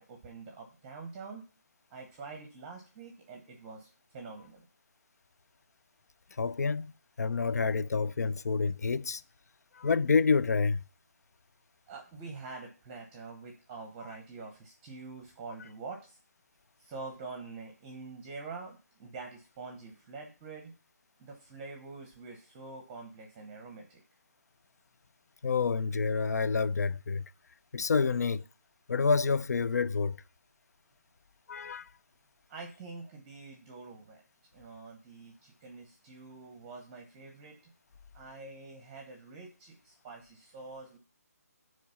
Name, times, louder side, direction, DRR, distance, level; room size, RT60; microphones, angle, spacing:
voice 1, 0.0-1.4 1.9-4.6 11.9-16.2 16.8-20.7 21.2-24.0 32.5-34.2 34.5-37.7 38.1-41.0, right 4 dB, 20° right, 0.9 m, -46 dB
voice 2, 6.4-6.9 7.2-9.2 9.7-10.8 25.4-27.2 27.7-28.4 28.9-30.2 31.5-31.9, left 5 dB, 80° left, 0.4 m, -28 dB
8.5 x 3.2 x 5.5 m
hypercardioid pair, 155°, 9 cm